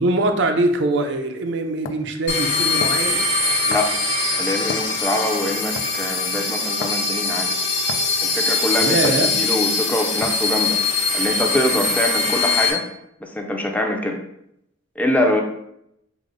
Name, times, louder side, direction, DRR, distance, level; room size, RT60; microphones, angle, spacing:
voice 1, 0.0-3.2 8.8-9.3, right 2 dB, 65° right, 6 dB, 0.4 m, -22 dB
sound 1, 1.1-1.2 1.8-2.1 2.8-3.1 3.7-4.0 4.7-5.0 5.8-6.0 6.8-7.0 7.9-8.2 9.0-9.3 10.2-10.5, left 5 dB, 90° left, 0.4 m, -32 dB
sound 2, 2.3-12.7, left 3 dB, 65° left, 1.0 m, -22 dB
voice 2, 4.4-7.5 8.2-10.8 11.1-12.8 13.2-14.2 15.0-15.4, left 1 dB, 10° left, 2 dB, 0.4 m, -24 dB
4.9 x 2.0 x 3.7 m, 0.78 s
head